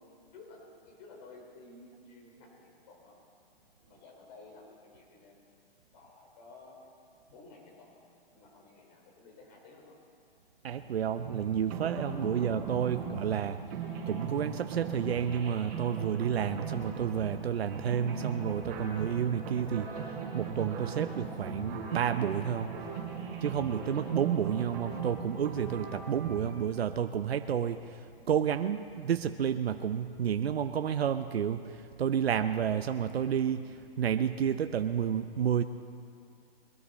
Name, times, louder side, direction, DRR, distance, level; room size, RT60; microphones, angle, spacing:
voice 1, 0.0-3.2 3.8-5.5 5.9-6.8 7.3-10.0, left 3 dB, 40° left, -1 dB, 4.6 m, -54 dB
voice 2, 10.6-13.6 14.1-22.7 23.4-28.0 28.3-35.6, right 8 dB, 80° right, 9 dB, 0.7 m, -30 dB
sound 1, 11.2-26.5, right 5 dB, 25° right, 3.8 m, -39 dB
22.0 x 13.0 x 4.2 m, 2.3 s
hypercardioid pair, 145°, 30 cm